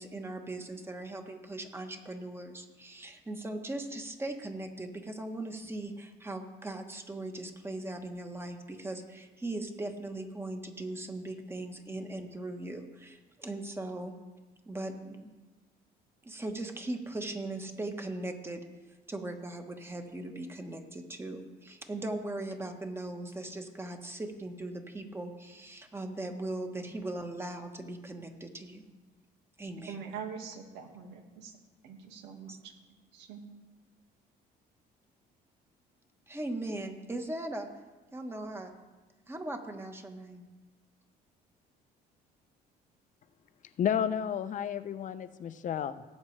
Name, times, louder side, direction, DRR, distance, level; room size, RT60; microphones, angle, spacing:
voice 1, 0.0-14.2 14.6-15.3 16.2-18.6 19.1-28.9 29.6-30.0 32.5-32.6 36.3-37.7 38.1-38.7 39.3-40.4, right 2 dB, 15° right, 5 dB, 1.3 m, -39 dB
voice 2, 29.9-31.5 31.8-32.7 33.1-33.4, right 7 dB, 90° right, 3 dB, 1.8 m, -43 dB
voice 3, 43.8-46.0, left 9 dB, 50° left, 12 dB, 0.7 m, -31 dB
17.5 x 8.3 x 3.3 m, 1.2 s
cardioid pair, 110°, 17 cm